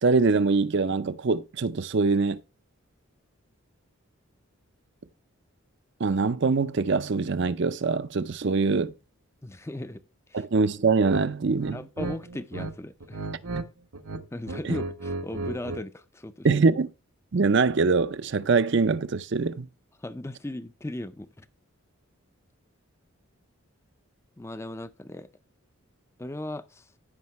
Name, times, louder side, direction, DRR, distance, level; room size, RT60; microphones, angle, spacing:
voice 1, 0.0-2.4 6.0-8.9 10.3-11.9 13.5-13.6 14.6-14.8 16.4-16.9 17.3-19.7, right 4 dB, 55° right, 0.5 m, -23 dB
voice 2, 9.4-10.0 10.3-10.4 11.7-13.2 14.3-16.5 20.0-21.5 24.4-25.3 26.2-26.9, left 1 dB, 10° left, 0.5 m, -37 dB
sound 1, 11.0-11.2 11.6-12.7 13.0-13.7 13.9-15.8, right 2 dB, 70° right, 1.0 m, -34 dB
15.0 x 5.4 x 3.1 m
head